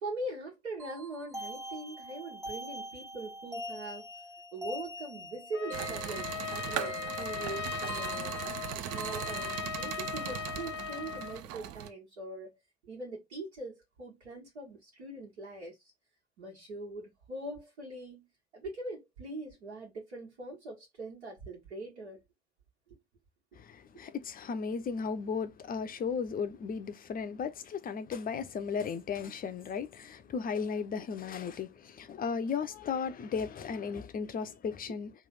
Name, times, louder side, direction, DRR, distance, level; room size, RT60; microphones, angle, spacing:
voice 1, 0.0-4.1 4.5-8.3 8.7-12.6 12.8-15.8 16.4-18.3 18.5-22.2 22.9-23.0 34.9-35.0, right 2 dB, 70° right, 1.7 m, -42 dB
sound 1, 0.8-9.5, right 1 dB, 10° right, 0.7 m, -44 dB
Trumpet, 5.5-11.4, left 7 dB, 90° left, 0.6 m, -38 dB
sound 2, 5.7-11.9, right 11 dB, 50° right, 0.6 m, -39 dB
voice 2, 23.6-35.1, left 6 dB, 25° left, 0.6 m, -35 dB
3.2 x 2.4 x 3.8 m
figure-of-eight pair, 60°, 34 cm